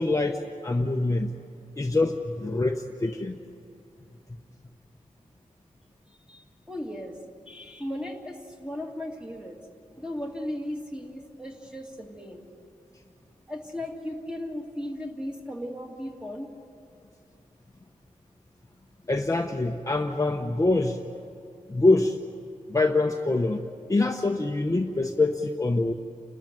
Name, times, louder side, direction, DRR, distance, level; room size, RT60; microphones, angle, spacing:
voice 1, 0.0-1.3 1.8-3.4 19.1-21.0 21.7-22.2 22.7-25.9, left 2 dB, 25° left, 3 dB, 0.8 m, -25 dB
voice 2, 6.1-7.2 7.5-9.6 10.0-12.4 13.5-16.5, left 1 dB, 5° right, 1 dB, 2.3 m, -36 dB
29.5 x 13.0 x 9.3 m, 2.5 s
wide cardioid pair, 130°, 14 cm